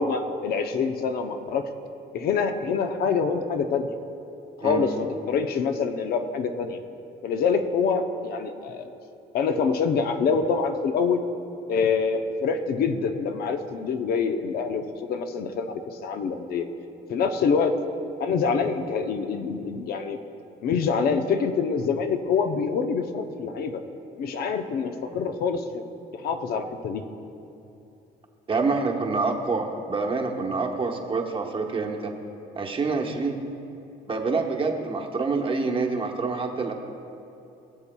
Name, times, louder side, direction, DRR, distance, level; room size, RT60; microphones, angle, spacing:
voice 1, 0.0-1.6 2.1-3.9 4.6-6.8 7.2-8.9 9.3-11.2 11.7-16.7 17.1-17.7 18.2-20.2 20.6-23.8 24.2-25.8 26.1-27.0, left 5 dB, 65° left, 7 dB, 0.7 m, -25 dB
voice 2, 28.5-32.1 32.5-33.4 34.1-36.7, right 4 dB, 30° right, 2 dB, 1.1 m, -27 dB
20.5 x 7.2 x 2.3 m, 2.8 s
cardioid pair, 110°, 17 cm